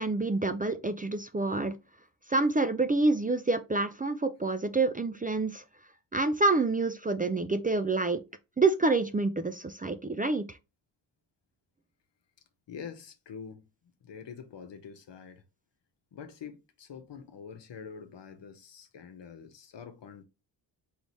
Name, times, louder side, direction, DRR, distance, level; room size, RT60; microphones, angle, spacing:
voice 1, 0.0-1.7 2.3-5.6 6.1-8.2 8.6-10.6, right 3 dB, 20° right, 0.5 m, -27 dB
voice 2, 12.7-13.7 14.0-15.4 16.1-20.2, left 6 dB, 60° left, 1.0 m, -45 dB
3.9 x 3.3 x 3.1 m
supercardioid pair, 45°, 49 cm